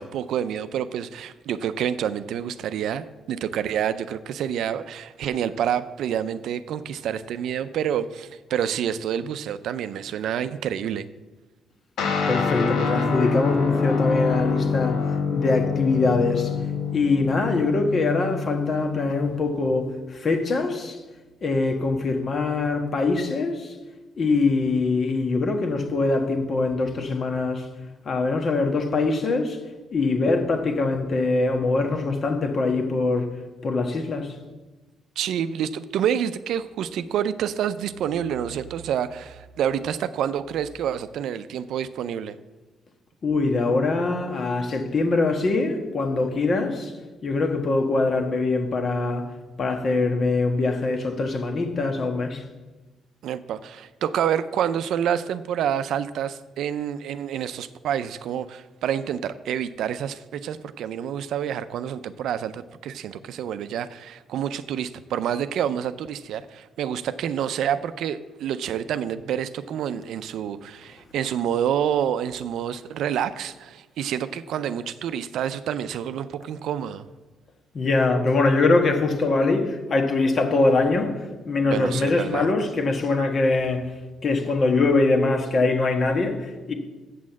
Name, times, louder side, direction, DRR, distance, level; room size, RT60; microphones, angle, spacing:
voice 1, 0.0-11.1 35.2-42.4 53.2-77.1 81.6-82.5, right 9 dB, 80° right, 0.4 m, -28 dB
Guitar, 12.0-19.7, left 5 dB, 80° left, 1.3 m, -26 dB
voice 2, 12.3-15.0 15.3-16.6 16.9-21.0 21.4-23.7 24.2-27.7 28.0-29.6 29.9-33.3 33.6-34.3 43.2-46.9 47.2-49.2 49.6-52.4 77.7-83.9 84.2-86.7, left 3 dB, 45° left, 1.4 m, -23 dB
7.5 x 6.3 x 7.3 m
cardioid pair, 90°, 0 cm